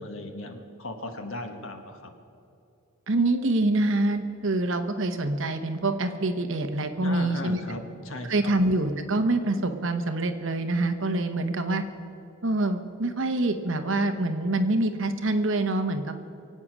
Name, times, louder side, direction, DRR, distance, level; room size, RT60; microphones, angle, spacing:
voice 1, 0.0-2.1 7.0-8.5, left 1 dB, 65° left, 5 dB, 1.4 m, -37 dB
voice 2, 3.1-7.6 8.3-11.8 12.4-16.1, right 2 dB, 60° right, 7 dB, 1.0 m, -25 dB
23.5 x 8.7 x 6.1 m, 2.7 s
head